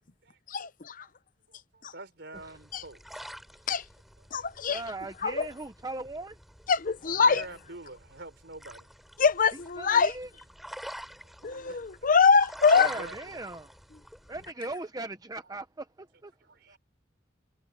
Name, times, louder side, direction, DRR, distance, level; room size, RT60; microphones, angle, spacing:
voice 1, 0.5-1.1 1.8-1.9 2.7-2.8 3.7-3.8 4.3-4.8 5.2-5.5 6.7-7.4 9.2-10.1 11.4-12.9, left 5 dB, 45° left, 0.7 m, -23 dB
voice 2, 1.5-3.2 4.2-4.5 7.0-8.9 11.7-12.1 12.8-13.4 16.4-16.8, right 2 dB, 65° right, 4.7 m, -46 dB
sound 1, 2.3-14.5, equal, ahead, 3.5 m, -47 dB
voice 3, 4.7-6.4 9.8-10.3 12.7-13.8 14.3-16.3 16.7-16.8, right 2 dB, 20° right, 0.8 m, -38 dB
head